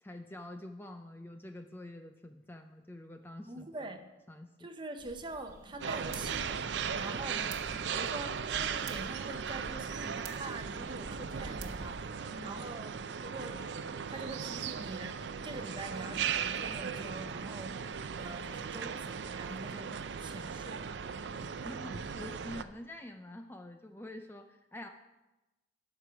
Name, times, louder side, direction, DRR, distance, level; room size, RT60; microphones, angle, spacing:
voice 1, 0.0-3.9 4.3-4.7 7.3-7.6 12.3-12.6 21.4-24.9, left 1 dB, 10° left, 5 dB, 0.4 m, -47 dB
voice 2, 3.5-4.1 4.6-7.5 7.9-12.9 13.2-13.7 14.1-20.9, right 2 dB, 25° right, 6 dB, 0.8 m, -44 dB
sound 1, 5.0-12.1, right 2 dB, 50° right, 1.0 m, -48 dB
sound 2, 5.8-22.6, right 6 dB, 75° right, 0.5 m, -37 dB
12.5 x 4.8 x 6.8 m, 1.0 s
head